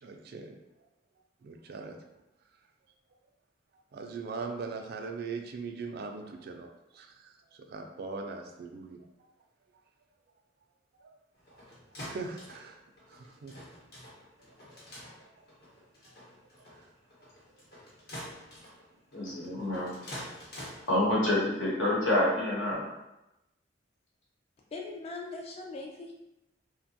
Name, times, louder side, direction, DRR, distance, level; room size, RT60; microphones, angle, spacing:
voice 1, 0.0-0.6 1.4-2.0 3.9-9.1 11.0-11.1 11.5-11.6 12.1-12.8 13.1-13.5 14.7-14.8, right 4 dB, 55° right, 4 dB, 0.3 m, -40 dB
sound 1, 11.3-21.7, equal, 55° left, 0.9 m, -48 dB
voice 2, 19.1-19.9 20.9-22.9, left 1 dB, 85° left, -6 dB, 1.1 m, -27 dB
voice 3, 24.7-26.1, left 3 dB, 35° left, 0 dB, 0.3 m, -40 dB
2.8 x 2.1 x 2.7 m, 0.92 s
head